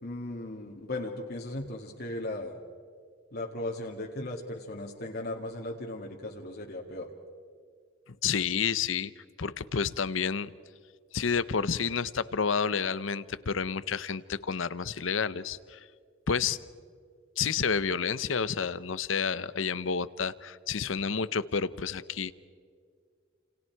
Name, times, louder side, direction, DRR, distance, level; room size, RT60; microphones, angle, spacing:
voice 1, 0.0-2.6 3.3-7.1, left 1 dB, 55° left, 0 dB, 2.0 m, -37 dB
voice 2, 8.2-10.5 11.1-15.8 16.3-16.6 17.4-22.3, left 6 dB, 80° left, 16 dB, 0.8 m, -30 dB
30.0 x 29.0 x 4.7 m, 2.1 s
head